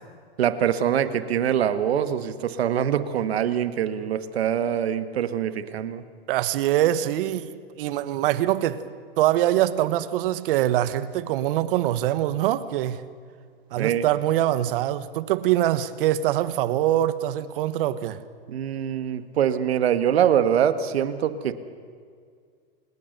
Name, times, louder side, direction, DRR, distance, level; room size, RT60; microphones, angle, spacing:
voice 1, 0.4-6.0 13.8-14.1 18.5-21.5, right 9 dB, 80° right, 11 dB, 1.8 m, -24 dB
voice 2, 6.3-8.8 9.2-13.0 13.7-18.2, right 13 dB, 60° right, 14 dB, 1.5 m, -23 dB
27.5 x 20.0 x 6.8 m, 2.1 s
hypercardioid pair, 125°, 31 cm